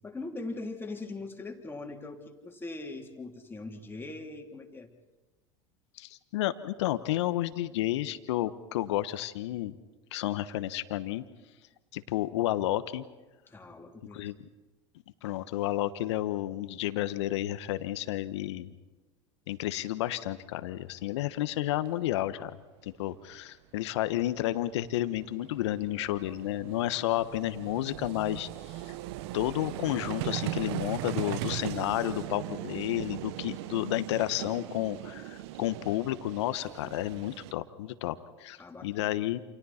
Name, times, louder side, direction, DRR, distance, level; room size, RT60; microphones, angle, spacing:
voice 1, 0.0-4.9 13.5-14.3 38.6-39.1, left 2 dB, 15° left, 2 dB, 3.3 m, -41 dB
voice 2, 6.0-9.8 10.1-11.2 11.9-13.0 14.1-14.5 15.2-18.7 19.5-28.5 28.8-28.9 29.3-39.4, left 14 dB, 70° left, 13 dB, 1.2 m, -31 dB
Vehicle, 21.4-21.5 21.7-21.9 23.9-24.0 24.1-37.5, right 15 dB, 65° right, 0.8 m, -39 dB
29.0 x 28.0 x 4.3 m, 1.2 s
hypercardioid pair, 85°, 15 cm